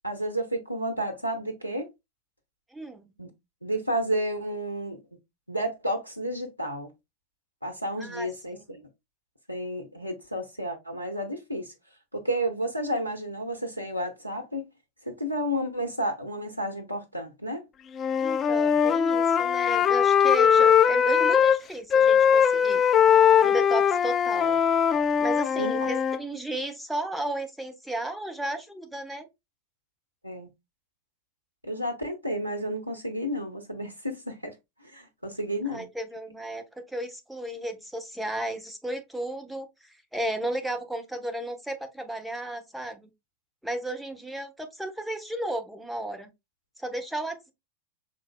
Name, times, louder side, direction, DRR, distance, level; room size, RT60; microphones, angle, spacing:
voice 1, 0.0-1.9 3.2-3.3 3.6-5.0 5.5-6.9 7.6-8.9 9.5-11.7 12.1-14.7 15.0-17.6 25.6-25.9 30.2-30.5 31.6-34.6 34.8-35.9, equal, 90° left, 0.7 m, -31 dB
voice 2, 2.7-3.1 8.0-8.6 18.2-22.8 23.4-24.6 25.2-29.3 35.7-39.7 40.1-43.1 43.6-46.3 46.8-47.5, right 1 dB, 5° right, 1.1 m, -34 dB
Wind instrument woodwind instrument, 18.0-21.6 21.9-26.2, left 8 dB, 25° left, 0.5 m, -21 dB
5.8 x 3.7 x 2.2 m
figure-of-eight pair, 90°, 0 cm